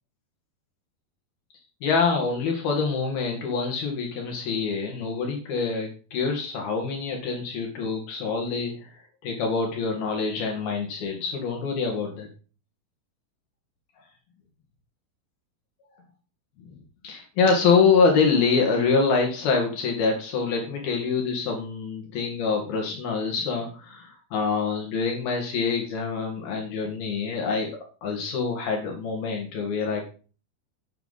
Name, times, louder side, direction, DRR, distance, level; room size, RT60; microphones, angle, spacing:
voice 1, 1.8-8.9 9.2-12.3 17.0-27.7 28.0-30.0, left 5 dB, 70° left, 1 dB, 3.8 m, -25 dB
12.0 x 9.4 x 4.1 m, 0.38 s
omnidirectional pair, 4.6 m